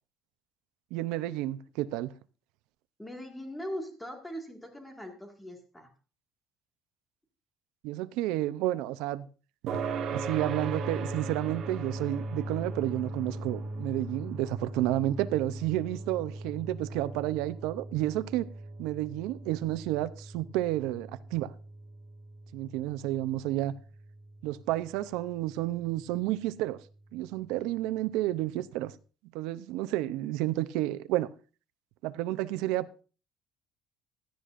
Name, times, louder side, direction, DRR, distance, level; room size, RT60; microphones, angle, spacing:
voice 1, 0.9-2.1 7.8-9.3 10.1-18.5 18.8-21.5 22.5-23.7 24.4-26.8 27.1-28.9 29.3-31.3 32.0-32.9, right 15 dB, 85° right, 0.6 m, -31 dB
voice 2, 3.0-5.9, equal, 5° left, 1.9 m, -40 dB
sound 1, 9.7-24.6, right 3 dB, 45° right, 1.7 m, -39 dB
16.5 x 11.0 x 2.5 m
cardioid pair, 170°, 0 cm